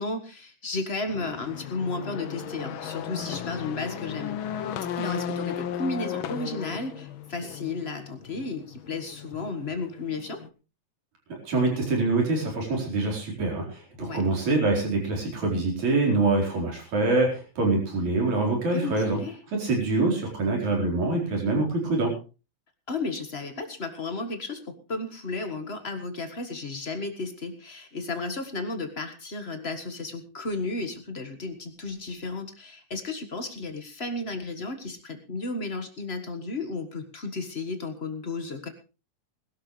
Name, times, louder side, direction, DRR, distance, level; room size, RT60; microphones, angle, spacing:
voice 1, 0.0-4.4 5.0-10.4 14.0-14.2 18.7-19.3 22.9-38.7, left 3 dB, 30° left, 7 dB, 1.2 m, -33 dB
sound 1, 1.1-10.5, left 9 dB, 70° left, 1.2 m, -36 dB
voice 2, 11.3-19.2 19.5-22.1, right 3 dB, 75° right, 0 dB, 5.8 m, -25 dB
20.5 x 12.5 x 3.3 m, 0.33 s
omnidirectional pair, 3.3 m